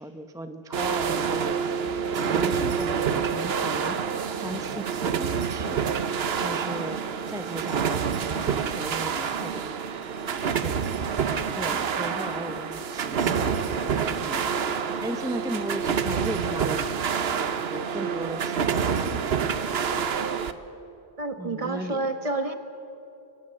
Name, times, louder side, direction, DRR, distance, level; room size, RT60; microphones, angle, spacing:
voice 1, 0.0-1.9 2.1-4.0 4.4-5.8 6.1-7.0 7.3-9.7 10.6-10.7 11.5-14.5 15.0-16.9 17.2-17.4 17.7-19.5 21.4-22.0, right 1 dB, 5° right, 8 dB, 0.7 m, -37 dB
sound 1, 0.7-20.5, right 6 dB, 75° right, 1.1 m, -27 dB
voice 2, 21.2-22.5, right 2 dB, 35° right, 7 dB, 1.4 m, -30 dB
23.5 x 18.5 x 7.6 m, 2.9 s
omnidirectional pair, 1.0 m